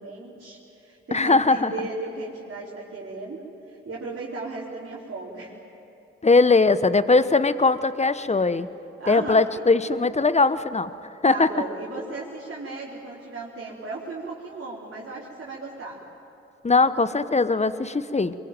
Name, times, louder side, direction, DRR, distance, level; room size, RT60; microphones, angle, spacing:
voice 1, 0.0-5.5 9.0-9.6 11.2-16.0, right 3 dB, 45° right, -6 dB, 4.5 m, -36 dB
voice 2, 1.1-1.7 6.2-8.7 9.1-10.9 11.2-11.5 16.6-18.4, left 3 dB, 25° left, 14 dB, 1.1 m, -20 dB
22.5 x 22.5 x 9.2 m, 2.9 s
hypercardioid pair, 40°, 29 cm